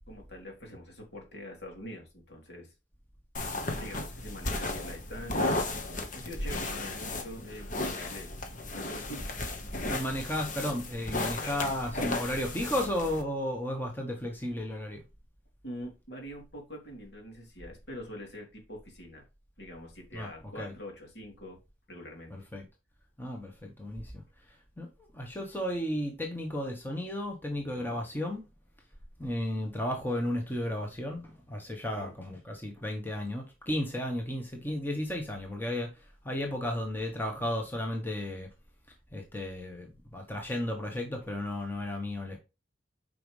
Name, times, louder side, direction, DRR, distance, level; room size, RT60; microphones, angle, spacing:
voice 1, 0.1-2.7 3.8-5.6 6.1-8.3 8.7-9.3 11.2-11.6 15.6-19.2 19.6-21.6 21.9-22.3 27.7-28.0 31.9-32.1, equal, 60° left, 3.2 m, -44 dB
sound 1, 3.3-13.2, left 2 dB, 45° left, 1.3 m, -34 dB
voice 2, 9.9-15.0 20.1-20.3 20.5-20.7 22.3-22.6 23.2-24.2 24.8-24.9 25.1-28.5 29.2-38.5 39.1-42.4, left 1 dB, 10° left, 1.2 m, -34 dB
8.9 x 5.3 x 3.2 m
head